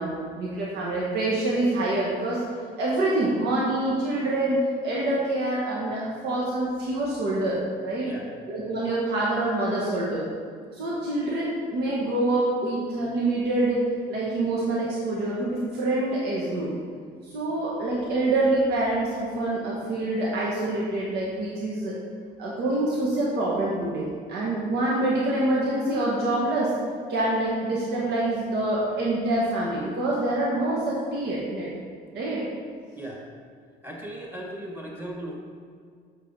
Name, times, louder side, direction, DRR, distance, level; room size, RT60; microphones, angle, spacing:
voice 1, 0.0-2.4 2.8-8.1 8.5-10.3 10.7-13.8 14.1-16.7 17.2-22.0 22.4-26.7 27.1-31.7 32.1-32.5, right 2 dB, 80° right, -5 dB, 1.4 m, -26 dB
voice 2, 32.9-33.3 33.8-35.4, right 1 dB, 15° right, -2 dB, 1.7 m, -37 dB
6.6 x 5.0 x 5.3 m, 2.1 s
cardioid pair, 110°, 17 cm